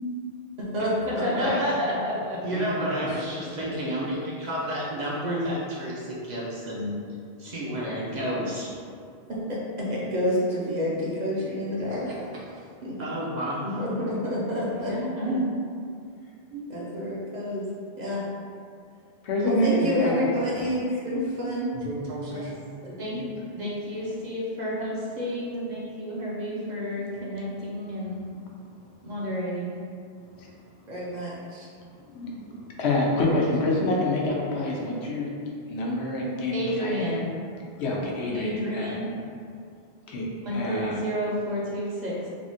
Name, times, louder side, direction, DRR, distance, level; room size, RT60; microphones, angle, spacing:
voice 1, 0.7-6.9 7.4-8.7 9.3-12.1 12.8-15.5 16.5-17.6 18.0-18.2 19.4-21.7 22.3-22.4 22.8-23.3 23.5-28.2 29.0-29.8 30.9-31.7 36.5-37.3 38.3-39.1 40.4-42.3, equal, 50° right, -6 dB, 0.6 m, -29 dB
voice 2, 2.5-3.3 11.9-12.4 21.7-22.7, right 1 dB, 70° right, -5 dB, 0.9 m, -37 dB
voice 3, 19.2-20.8 23.2-23.3 28.0-28.2 30.4-30.5 32.1-32.5 32.8-35.3 35.7-37.0 37.8-39.0 40.1-41.0, left 1 dB, 85° left, -3 dB, 0.9 m, -27 dB
3.5 x 2.1 x 2.5 m, 2.3 s
omnidirectional pair, 1.1 m